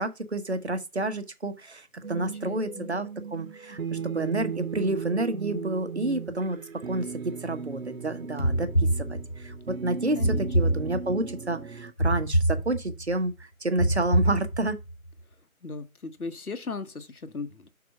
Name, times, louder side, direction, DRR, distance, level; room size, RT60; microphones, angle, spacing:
voice 1, 0.0-6.6 6.9-13.3 13.6-14.8, right 2 dB, 50° right, 1.2 m, -30 dB
sound 1, 2.0-11.9, right 6 dB, 65° right, 0.9 m, -37 dB
voice 2, 2.1-2.9 10.1-10.8 15.6-17.7, left 4 dB, 85° left, 1.2 m, -38 dB
sound 2, 8.4-9.6 10.2-11.4 12.0-13.1 13.8-14.9, right 1 dB, 45° left, 0.4 m, -26 dB
6.0 x 4.8 x 5.3 m
figure-of-eight pair, 170°, 43 cm